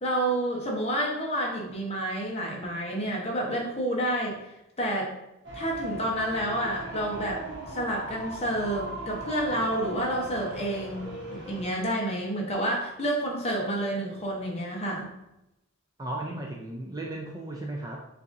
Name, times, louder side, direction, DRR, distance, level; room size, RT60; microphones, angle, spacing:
voice 1, 0.0-4.4 4.8-5.2 5.5-15.1, right 1 dB, 30° left, -2 dB, 0.9 m, -29 dB
sound 1, 5.4-11.6, equal, 55° right, 1.0 m, -38 dB
voice 2, 16.0-18.0, right 1 dB, 15° right, -1 dB, 0.4 m, -35 dB
6.7 x 2.6 x 2.6 m, 0.90 s
head